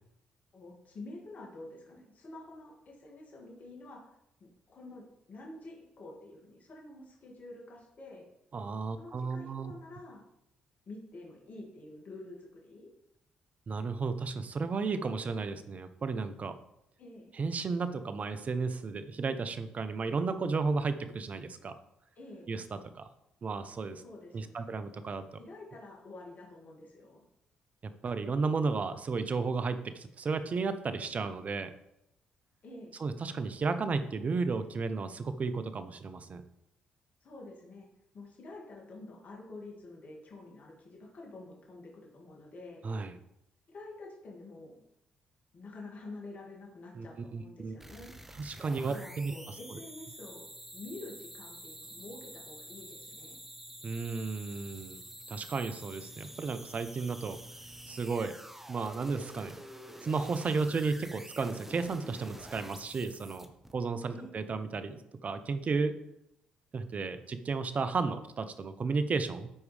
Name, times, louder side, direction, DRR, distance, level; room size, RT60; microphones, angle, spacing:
voice 1, 0.5-4.0 4.7-8.2 8.9-10.2 10.9-12.9 17.0-17.3 22.2-22.5 24.0-24.7 25.4-27.2 32.6-33.0 37.2-37.9 38.1-42.8 43.7-44.7 45.5-48.1 48.8-50.5 50.7-53.4 64.1-64.3, left 2 dB, 50° left, -2 dB, 2.3 m, -48 dB
voice 2, 8.5-9.7 13.7-16.5 17.3-21.7 22.5-23.0 23.4-24.0 24.3-25.2 27.8-31.7 33.0-36.4 42.8-43.2 46.9-47.1 47.3-47.7 48.4-49.3 53.8-55.0 55.3-57.4 57.9-58.3 58.7-59.6 60.0-63.5 63.7-65.9 66.7-69.5, right 4 dB, 45° right, 10 dB, 0.8 m, -33 dB
sound 1, 47.8-63.7, right 1 dB, 10° right, 1.1 m, -48 dB
12.5 x 4.7 x 3.4 m, 0.80 s
supercardioid pair, 55°, 3 cm